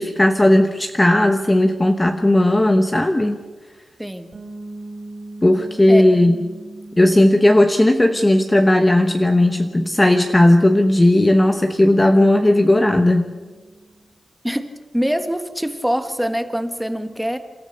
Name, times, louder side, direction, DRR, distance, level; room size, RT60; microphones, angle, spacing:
voice 1, 0.0-3.4 5.4-6.4 7.0-13.3, left 1 dB, 15° left, 6 dB, 1.0 m, -15 dB
sound 1, 4.3-14.0, right 2 dB, 45° right, 3.8 m, -41 dB
voice 2, 14.9-17.4, equal, 5° right, 8 dB, 1.4 m, -24 dB
28.5 x 13.5 x 6.7 m, 1.3 s
wide cardioid pair, 105°, 0 cm